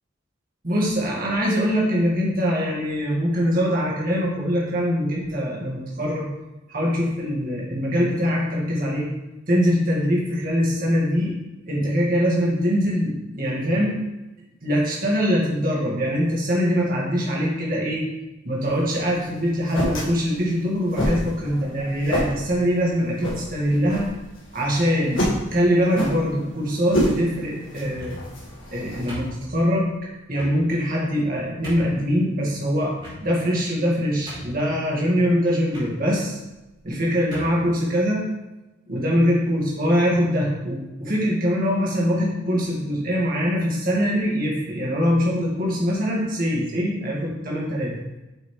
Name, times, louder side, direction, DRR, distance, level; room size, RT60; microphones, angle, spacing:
voice 1, 0.6-6.3 6.7-9.1 9.5-11.3 11.7-14.0 14.6-18.0 18.4-24.1 24.5-28.2 28.7-29.9 30.3-32.9 33.2-36.4 36.8-38.3 38.9-48.0, equal, 45° right, -4 dB, 1.8 m, -23 dB
sound 1, 18.6-29.3, equal, 65° left, 1.7 m, -29 dB
sound 2, 27.8-28.4 29.1-29.8 30.3-30.6 31.2-31.3 31.6-32.0 33.0-33.5 33.9-34.0 34.3-34.7 35.7-35.9 36.8-36.9 37.3-37.6, equal, 25° right, 2.6 m, -39 dB
7.9 x 5.8 x 3.2 m, 1.0 s
head